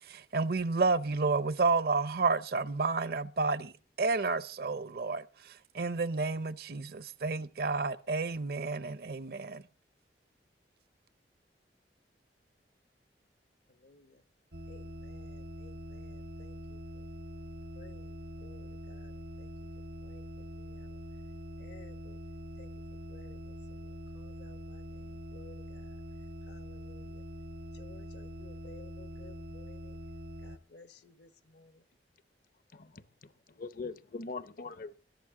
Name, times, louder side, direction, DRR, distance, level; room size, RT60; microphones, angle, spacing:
voice 1, 0.1-3.7 4.0-9.6, right 4 dB, 60° right, 0.6 m, -31 dB
voice 2, 13.7-14.2 14.7-17.1 17.7-19.5 20.0-21.0 21.6-22.2 22.6-26.0 26.5-27.2 27.7-30.0 30.4-31.8, left 3 dB, 75° left, 1.1 m, -57 dB
sound 1, 14.5-30.6, equal, 75° right, 1.0 m, -44 dB
voice 3, 32.7-35.0, left 4 dB, 50° left, 0.7 m, -42 dB
21.0 x 11.5 x 3.7 m
head